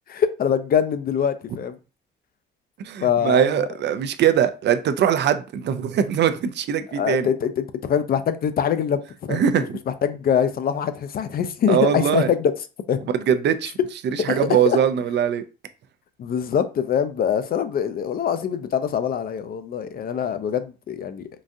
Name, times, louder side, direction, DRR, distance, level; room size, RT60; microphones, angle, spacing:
voice 1, 0.1-1.8 3.0-3.7 7.0-9.0 9.3-12.5 12.9-13.0 14.3-14.8 16.2-21.3, left 8 dB, 50° left, 0.4 m, -24 dB
voice 2, 2.8-7.3 9.3-9.8 11.7-12.3 13.3-13.7 14.2-15.4, right 8 dB, 60° right, 0.4 m, -21 dB
3.8 x 2.3 x 2.6 m
cardioid pair, 90°, 20 cm